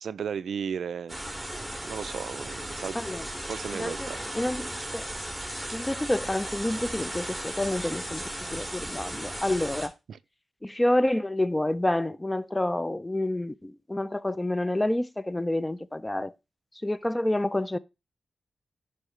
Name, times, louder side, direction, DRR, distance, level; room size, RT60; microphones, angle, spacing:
voice 1, 0.0-1.2 1.9-3.2 3.5-4.2 10.1-10.2, right 7 dB, 80° right, 0.3 m, -35 dB
sound 1, 1.1-9.9, right 1 dB, ahead, 2.1 m, -36 dB
voice 2, 3.7-4.1 4.3-5.1 5.7-9.9 10.6-16.3 16.8-17.8, left 1 dB, 20° left, 0.4 m, -28 dB
9.7 x 5.6 x 3.2 m
cardioid pair, 50°, 0 cm